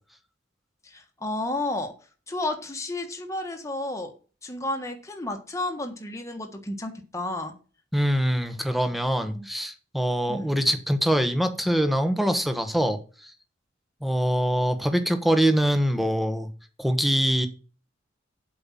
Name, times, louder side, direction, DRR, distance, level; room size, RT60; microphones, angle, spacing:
voice 1, 0.8-1.9 2.3-4.1 4.4-7.5 9.3-9.5 10.3-10.5, left 2 dB, 15° left, 4 dB, 1.4 m, -32 dB
voice 2, 7.9-13.3 14.0-16.5 16.8-17.5, equal, ahead, 7 dB, 1.2 m, -24 dB
8.0 x 5.3 x 7.3 m, 0.35 s
head